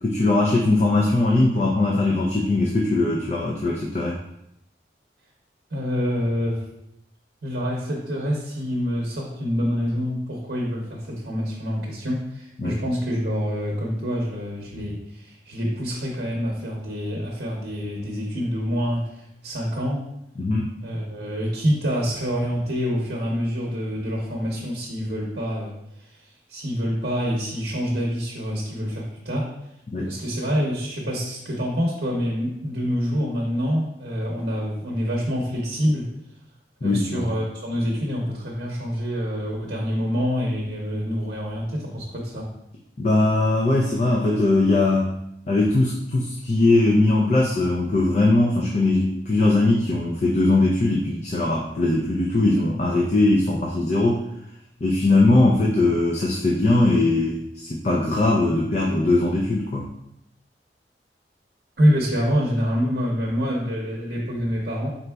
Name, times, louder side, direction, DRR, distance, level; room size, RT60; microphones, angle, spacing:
voice 1, 0.0-4.2 12.6-12.8 20.4-20.7 29.9-30.1 36.8-37.2 43.0-45.1 45.5-54.2 54.8-59.9, left 2 dB, 40° left, -2 dB, 0.4 m, -20 dB
voice 2, 5.7-6.6 7.4-20.0 20.8-25.7 26.0-29.5 30.0-36.1 36.8-42.5 61.8-64.9, equal, 65° right, -3 dB, 0.7 m, -26 dB
4.4 x 3.9 x 2.3 m, 0.82 s
head